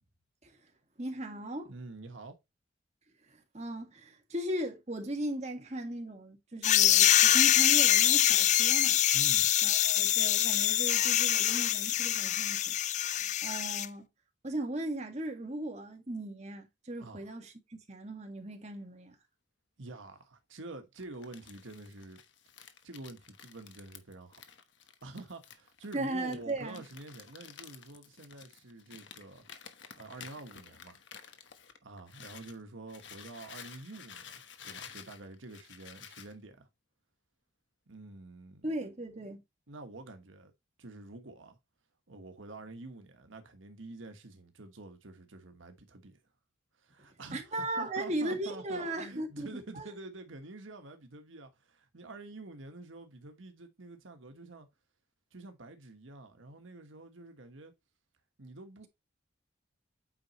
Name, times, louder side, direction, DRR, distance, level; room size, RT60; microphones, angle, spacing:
voice 1, 1.0-1.7 3.3-9.0 9.6-14.1 14.4-19.2 25.9-26.8 38.6-39.4 47.3-49.5 49.7-49.9, right 1 dB, 35° right, 1.8 m, -37 dB
voice 2, 1.7-2.4 9.1-9.5 17.0-17.3 19.8-22.2 22.6-24.4 25.0-29.5 30.0-31.0 31.8-36.7 37.9-38.7 39.7-40.5 40.8-41.6 42.1-46.2 46.8-54.7 55.3-57.7 58.4-58.9, right 2 dB, 90° right, 1.3 m, -47 dB
sound 1, 6.6-13.9, left 12 dB, 35° left, 0.3 m, -25 dB
Crumpling crinkling, 21.0-32.6 32.9-36.3, left 7 dB, 70° left, 1.1 m, -52 dB
8.7 x 5.2 x 3.0 m
head